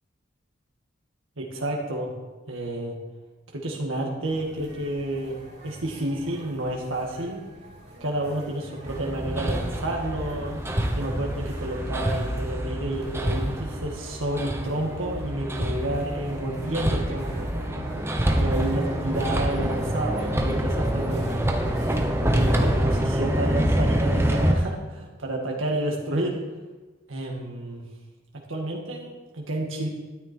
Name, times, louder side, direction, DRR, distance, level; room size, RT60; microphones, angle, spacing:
voice 1, 1.4-2.1 2.5-3.0 3.5-5.3 5.6-7.4 8.0-10.6 10.9-17.5 18.3-21.4 22.3-26.4 27.1-27.9 28.5-29.9, right 1 dB, 90° right, 0 dB, 1.9 m, -30 dB
sound 1, 4.2-22.8, equal, 55° right, 3.5 m, -42 dB
Hammer, 8.9-24.5, right 1 dB, 10° right, 1.0 m, -26 dB
12.5 x 9.9 x 4.5 m, 1.2 s
head